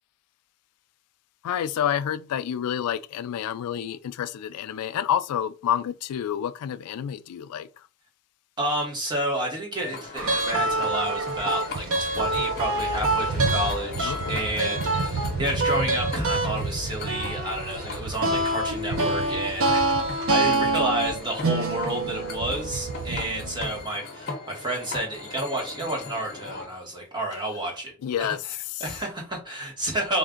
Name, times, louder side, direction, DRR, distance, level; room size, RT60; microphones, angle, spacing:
voice 1, 1.4-7.7 14.0-14.3 28.0-28.4 28.7-28.8, left 9 dB, 85° left, 0.3 m, -29 dB
voice 2, 8.6-27.9 28.2-30.2, right 1 dB, 20° right, 1.2 m, -30 dB
sound 1, 9.7-26.7, left 3 dB, 45° left, 0.8 m, -39 dB
sound 2, 10.2-23.8, right 2 dB, 60° right, 0.7 m, -26 dB
3.5 x 2.5 x 3.7 m
head